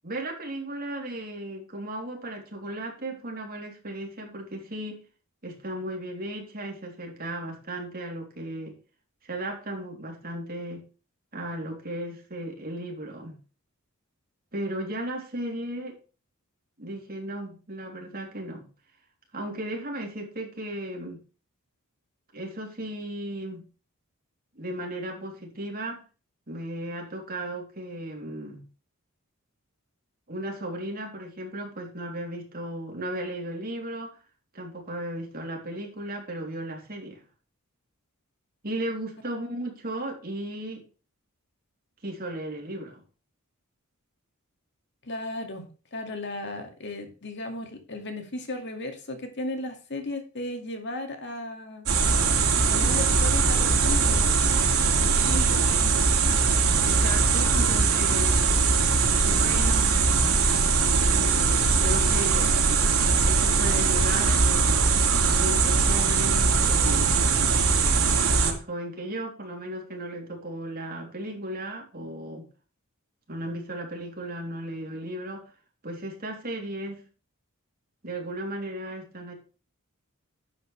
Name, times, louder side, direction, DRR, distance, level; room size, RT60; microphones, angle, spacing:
voice 1, 0.0-5.0 5.4-8.7 9.3-10.8 11.3-13.4 14.5-15.9 16.8-18.7 19.3-21.2 22.3-23.6 24.5-26.1 26.5-28.6 30.3-34.1 34.5-37.2 38.6-40.8 42.0-43.0 56.8-58.4 59.1-60.0 61.1-62.5 63.2-64.8 65.3-67.3 68.4-72.5 73.3-75.5 75.8-77.0 78.0-79.3, right 1 dB, 45° right, 1 dB, 3.4 m, -35 dB
voice 2, 45.0-51.9 52.7-54.2 54.8-55.9, left 1 dB, 55° left, 5 dB, 2.2 m, -35 dB
sound 1, 51.9-68.5, right 4 dB, 85° right, 2.6 m, -21 dB
10.5 x 8.1 x 3.4 m, 0.35 s
head